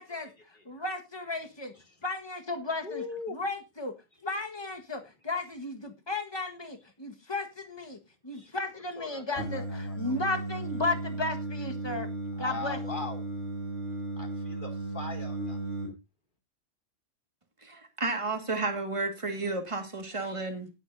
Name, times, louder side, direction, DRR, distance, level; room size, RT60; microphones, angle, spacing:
voice 1, 0.0-1.7 2.0-3.0 3.3-3.9 4.2-8.0 8.2-12.1 12.4-12.8, left 2 dB, 20° left, 5 dB, 1.5 m, -34 dB
voice 2, 2.8-3.4 8.3-8.5 9.0-10.0 12.4-13.2 14.2-15.6, left 3 dB, 40° left, 3 dB, 3.0 m, -40 dB
Singing, 9.3-15.9, right 2 dB, 80° left, 5.1 m, -35 dB
voice 3, 17.6-20.7, right 3 dB, 25° right, 5 dB, 2.0 m, -32 dB
18.0 x 8.2 x 2.7 m, 0.24 s
omnidirectional pair, 1.3 m